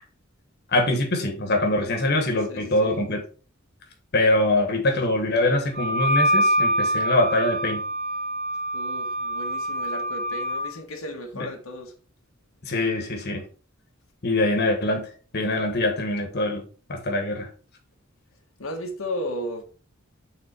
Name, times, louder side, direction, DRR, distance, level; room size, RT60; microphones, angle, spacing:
voice 1, 0.7-3.2 4.1-7.8 11.3-11.5 12.6-13.4 14.2-17.5, left 1 dB, 55° left, 1.5 m, -24 dB
voice 2, 2.5-2.9 8.7-11.9 18.6-19.6, left 1 dB, 90° left, 1.3 m, -34 dB
Wind instrument woodwind instrument, 5.7-10.7, right 1 dB, 40° right, 1.0 m, -25 dB
6.7 x 4.2 x 4.4 m
head